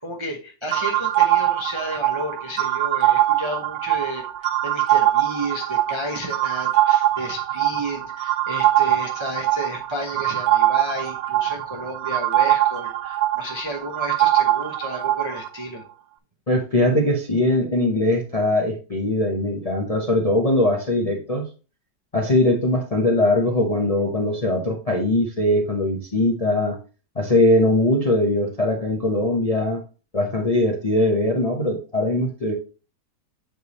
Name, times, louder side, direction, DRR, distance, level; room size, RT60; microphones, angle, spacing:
voice 1, 0.0-15.8, equal, 25° right, 1 dB, 0.6 m, -32 dB
sound 1, 0.7-15.5, right 13 dB, 70° right, 1.0 m, -22 dB
voice 2, 16.5-21.4 22.1-26.8 27.2-29.8 30.1-32.5, left 1 dB, 35° left, 1 dB, 0.6 m, -21 dB
8.0 x 3.3 x 4.1 m, 0.34 s
omnidirectional pair, 1.9 m